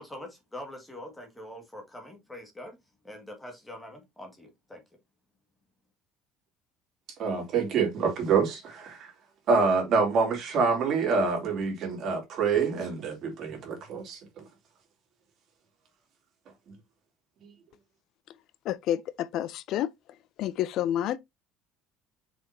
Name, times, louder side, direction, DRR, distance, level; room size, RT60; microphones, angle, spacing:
voice 1, 0.0-2.8 3.0-4.8, left 1 dB, 5° left, 2.2 m, -44 dB
voice 2, 7.2-9.1 9.5-14.4 17.4-17.5, right 5 dB, 40° right, 3.5 m, -26 dB
voice 3, 18.6-19.9 20.4-21.2, left 11 dB, 50° left, 0.5 m, -29 dB
6.8 x 5.6 x 2.9 m
cardioid pair, 160°, 0 cm